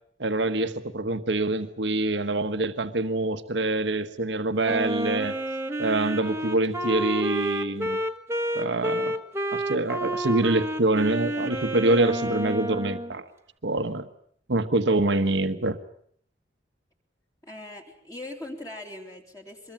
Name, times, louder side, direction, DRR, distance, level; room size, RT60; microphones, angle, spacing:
voice 1, 0.2-5.3 5.8-8.0 8.5-9.2 9.5-13.2 13.6-14.1 14.5-15.8, right 2 dB, 80° right, 8 dB, 1.4 m, -25 dB
Wind instrument woodwind instrument, 4.6-13.1, right 1 dB, 15° right, 1.4 m, -30 dB
voice 2, 17.4-19.7, left 1 dB, 20° left, 1 dB, 3.2 m, -40 dB
24.5 x 21.5 x 9.0 m, 0.64 s
head